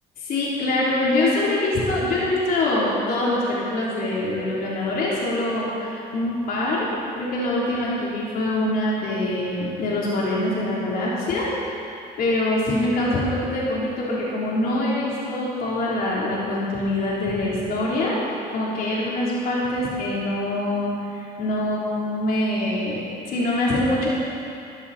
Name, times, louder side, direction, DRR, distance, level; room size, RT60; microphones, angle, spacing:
voice 1, 0.2-6.9 7.2-11.9 12.2-24.1, left 1 dB, 60° left, -6 dB, 3.7 m, -24 dB
18.0 x 13.0 x 4.3 m, 2.6 s
cardioid pair, 110°, 17 cm